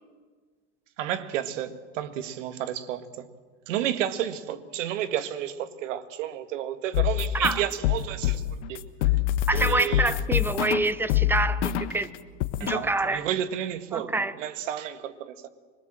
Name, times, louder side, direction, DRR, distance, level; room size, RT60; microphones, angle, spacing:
voice 1, 1.0-3.3 3.7-8.4 8.7-8.9 9.5-10.1 12.6-15.5, right 11 dB, 80° right, 1.8 m, -31 dB
sound 1, 6.9-12.0 12.4-12.8, left 13 dB, 70° left, 1.4 m, -25 dB
voice 2, 9.5-12.1 12.6-13.3 13.9-14.4, right 2 dB, 5° right, 0.6 m, -26 dB
24.5 x 22.5 x 7.7 m
supercardioid pair, 140°, 37 cm